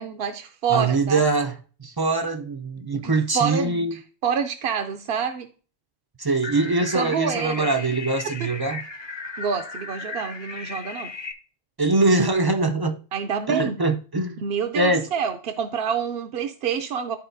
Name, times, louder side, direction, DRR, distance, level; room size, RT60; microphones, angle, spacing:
voice 1, 0.0-1.2 2.9-5.5 6.9-7.7 9.4-11.1 13.1-13.7 14.4-17.2, right 7 dB, 65° right, 0.7 m, -27 dB
voice 2, 0.7-3.9 6.2-8.8 11.8-13.0 13.5-14.4 14.7-15.1, right 3 dB, 35° right, 0.3 m, -23 dB
sound 1, 6.4-11.3, left 4 dB, 30° left, 0.7 m, -36 dB
12.0 x 4.1 x 2.6 m
omnidirectional pair, 1.1 m